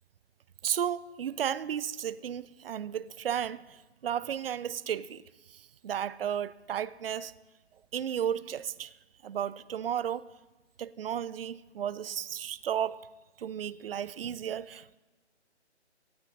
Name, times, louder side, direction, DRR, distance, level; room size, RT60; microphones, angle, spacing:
voice 1, 0.6-5.2 5.5-7.3 7.9-9.0 9.2-10.2 10.8-13.0 13.4-15.0, right 9 dB, 55° right, 0.4 m, -33 dB
16.5 x 8.7 x 3.9 m
figure-of-eight pair, 155°, 34 cm